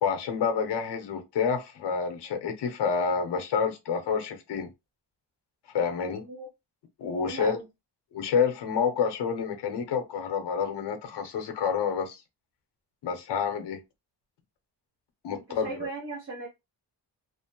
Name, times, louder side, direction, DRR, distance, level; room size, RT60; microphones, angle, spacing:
voice 1, 0.0-4.7 5.7-6.3 7.0-7.6 8.1-12.2 13.0-13.8 15.2-15.8, left 6 dB, 70° left, 0.8 m, -28 dB
voice 2, 6.1-6.5 7.2-7.7 15.3-16.5, right 3 dB, 35° right, 0.7 m, -38 dB
2.5 x 2.0 x 2.9 m
wide cardioid pair, 170°, 42 cm